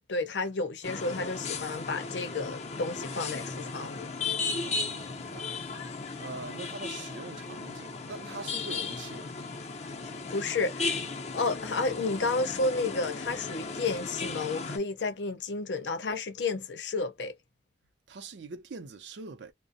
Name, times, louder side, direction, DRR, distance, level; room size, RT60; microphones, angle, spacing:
voice 1, 0.1-4.1 10.3-11.0 11.3-17.3, left 3 dB, 85° left, 0.7 m, -31 dB
sound 1, 0.8-14.8, left 4 dB, 40° left, 0.5 m, -36 dB
voice 2, 4.6-5.6 6.2-9.3 18.1-19.5, right 4 dB, 80° right, 0.5 m, -43 dB
2.5 x 2.0 x 2.6 m
head